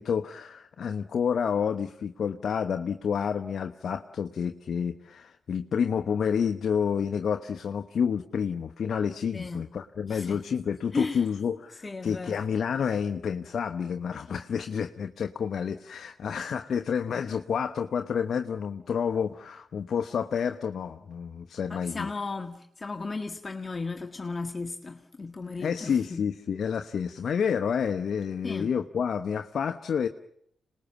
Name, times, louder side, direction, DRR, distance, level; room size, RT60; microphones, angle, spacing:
voice 1, 0.0-22.1 25.6-30.1, left 7 dB, 65° left, 1.0 m, -29 dB
voice 2, 9.3-9.7 10.1-10.4 10.9-11.2 11.8-12.4 21.7-26.2 28.4-28.7, left 3 dB, 35° left, 1.6 m, -35 dB
27.0 x 20.0 x 7.2 m
supercardioid pair, 50°, 0 cm